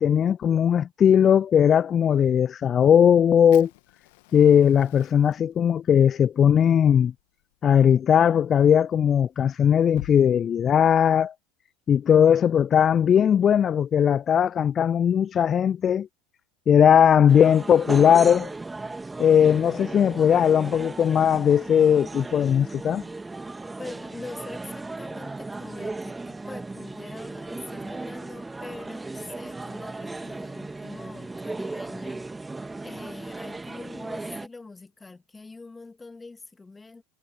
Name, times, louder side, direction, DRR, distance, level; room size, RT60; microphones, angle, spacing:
voice 1, 0.0-3.7 4.3-7.1 7.6-11.3 11.9-16.1 16.7-18.5 19.2-23.0, left 8 dB, 30° left, 0.4 m, -19 dB
Fire, 3.5-10.2, left 24 dB, 60° left, 1.9 m, -51 dB
sound 1, 17.3-34.5, right 3 dB, 10° right, 2.2 m, -36 dB
voice 2, 23.8-32.6 32.8-37.0, left 3 dB, 15° left, 2.7 m, -43 dB
figure-of-eight pair, 75°, 0 cm